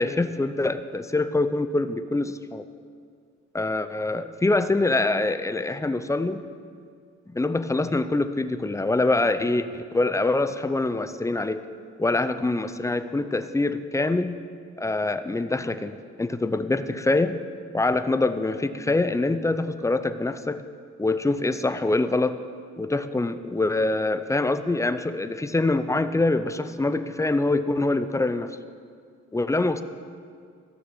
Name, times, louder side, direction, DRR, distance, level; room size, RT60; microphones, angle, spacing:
voice 1, 0.0-2.6 3.5-6.4 7.3-11.6 12.0-14.4 14.8-17.4 17.7-20.6 21.0-22.4 22.8-28.6 29.3-29.8, left 2 dB, 10° left, 11 dB, 0.5 m, -24 dB
15.0 x 6.7 x 5.9 m, 2.2 s
cardioid pair, 90°, 30 cm